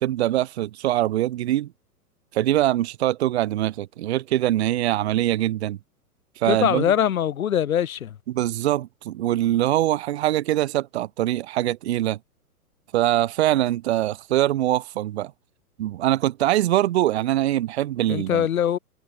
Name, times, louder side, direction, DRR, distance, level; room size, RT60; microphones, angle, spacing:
voice 1, 0.0-1.7 2.3-5.8 6.4-6.8 8.3-12.2 12.9-15.3 15.8-18.5, right 14 dB, 45° right, 0.7 m, -23 dB
voice 2, 6.4-8.2 18.1-18.8, left 9 dB, 65° left, 0.8 m, -22 dB
figure-of-eight pair, 105°, 45 cm